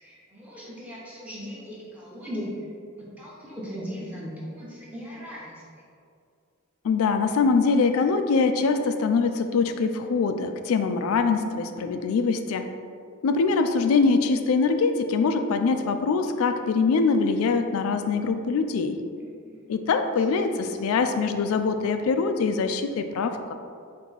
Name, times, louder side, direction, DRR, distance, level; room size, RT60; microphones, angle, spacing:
voice 1, 0.0-2.5 3.0-5.6 19.2-19.6 20.3-20.8, equal, 5° right, -8 dB, 0.7 m, -38 dB
voice 2, 6.8-12.6 13.2-19.0 19.7-23.5, left 4 dB, 75° left, 7 dB, 0.3 m, -23 dB
4.4 x 2.7 x 3.9 m, 2.3 s
head